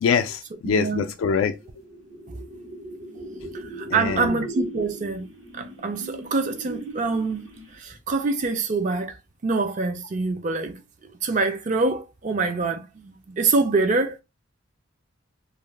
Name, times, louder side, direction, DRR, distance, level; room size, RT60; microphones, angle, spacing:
voice 1, 0.0-1.6 3.9-4.4, left 6 dB, 85° left, 0.3 m, -24 dB
voice 2, 0.6-1.0 3.8-5.2 5.5-7.4 7.8-9.1 9.4-10.7 11.2-14.2, right 3 dB, 40° right, 0.4 m, -25 dB
sound 1, 1.5-7.9, right 1 dB, 85° right, 1.0 m, -38 dB
2.5 x 2.1 x 3.1 m
head